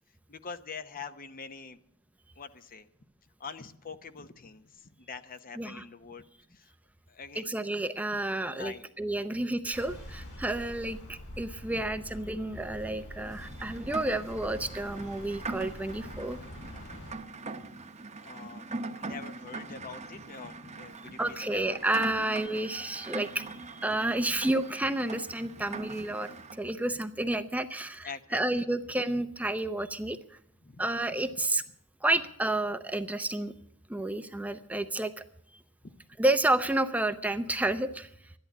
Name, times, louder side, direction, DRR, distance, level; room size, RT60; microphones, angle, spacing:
voice 1, 0.3-1.8 2.4-2.9 3.4-6.2 6.5-6.7 7.1-7.5 8.5-8.8 11.7-11.8 12.4-12.8 13.3-13.7 16.6-17.0 17.6-17.7 18.2-18.7 19.0-22.2 24.1-24.3 25.5-26.0 28.0-28.7 30.6-30.9 35.8-36.0, left 5 dB, 40° left, 11 dB, 0.8 m, -45 dB
voice 2, 7.4-16.4 21.2-30.4 30.8-31.6 32.0-33.5 33.9-35.2 36.2-38.1, right 1 dB, 5° right, 9 dB, 0.6 m, -30 dB
sound 1, 9.7-17.2, equal, 55° left, 3.7 m, -45 dB
Rain, 13.3-26.6, right 3 dB, 30° right, 0.9 m, -42 dB
13.5 x 11.0 x 8.0 m, 0.70 s
head